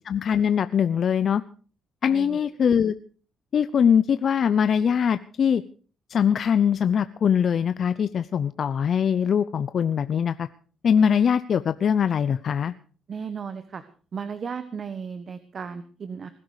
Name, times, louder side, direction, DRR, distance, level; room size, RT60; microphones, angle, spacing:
voice 1, 0.0-1.4 2.0-2.9 3.5-5.6 6.1-10.5 10.8-12.7, left 7 dB, 55° left, 13 dB, 0.7 m, -22 dB
voice 2, 2.1-2.5 13.1-13.8 14.1-16.3, right 6 dB, 45° right, 11 dB, 1.3 m, -35 dB
20.5 x 12.5 x 4.9 m, 0.40 s
cardioid pair, 90°, 0 cm